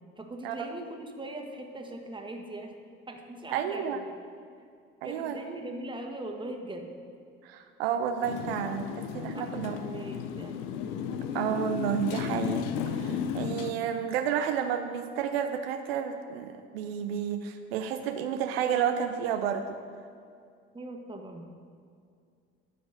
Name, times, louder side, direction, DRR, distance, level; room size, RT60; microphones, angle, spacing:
voice 1, 0.2-2.7 3.1-4.0 5.0-6.9 9.3-10.7 20.7-21.5, right 2 dB, 15° right, 2 dB, 1.6 m, -40 dB
voice 2, 3.5-4.0 5.0-5.4 7.4-9.8 11.3-12.6 12.9-19.8, right 8 dB, 75° right, 6 dB, 0.7 m, -31 dB
Motorcycle, 8.2-13.7, left 8 dB, 70° left, 0.7 m, -34 dB
13.0 x 5.0 x 6.6 m, 2.2 s
hypercardioid pair, 65°, 30 cm